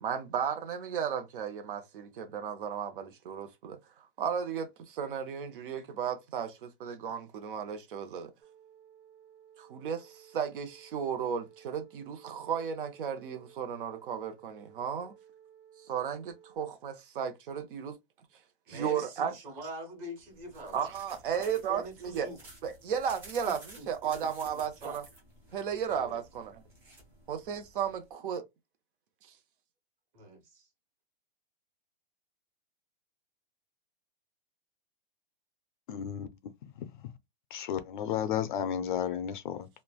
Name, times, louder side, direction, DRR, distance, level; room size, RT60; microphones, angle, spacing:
voice 1, 0.0-8.3 9.6-15.1 15.9-18.0 18.7-19.3 20.7-22.3 22.6-23.6 23.9-25.0 25.5-26.6 27.3-28.4, right 7 dB, 60° right, 0.7 m, -34 dB
sound 1, 8.4-16.6, right 9 dB, 85° right, 1.4 m, -57 dB
voice 2, 18.7-20.8 21.3-22.4 23.4-23.9 24.1-24.3 24.5-25.0 25.9-26.2 30.1-30.7, equal, 30° right, 1.2 m, -44 dB
sound 2, 20.2-28.1, right 2 dB, 10° right, 0.4 m, -54 dB
voice 3, 35.9-36.3 36.8-36.9 37.5-39.7, left 9 dB, 55° left, 0.5 m, -33 dB
3.1 x 2.2 x 2.2 m
hypercardioid pair, 155°, 30 cm